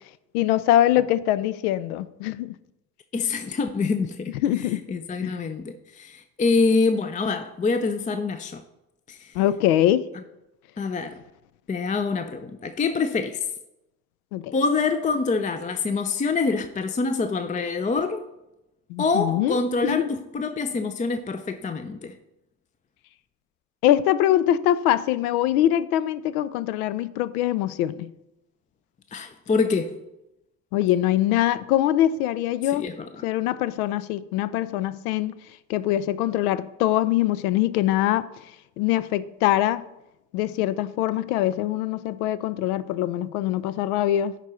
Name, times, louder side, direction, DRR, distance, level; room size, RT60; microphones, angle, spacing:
voice 1, 0.3-2.5 4.4-4.8 5.2-5.4 9.3-10.1 14.3-14.5 18.9-20.1 23.8-28.1 30.7-32.9 33.2-35.4 35.7-38.3 38.8-39.8 40.3-44.4, left 13 dB, 80° left, 0.5 m, -23 dB
voice 2, 3.1-8.6 9.1-9.3 10.8-11.2 11.7-13.4 14.5-18.2 19.0-22.1 29.1-29.9 32.6-33.2, left 4 dB, 20° left, 0.5 m, -26 dB
10.5 x 4.0 x 4.3 m
hypercardioid pair, 65°, 44 cm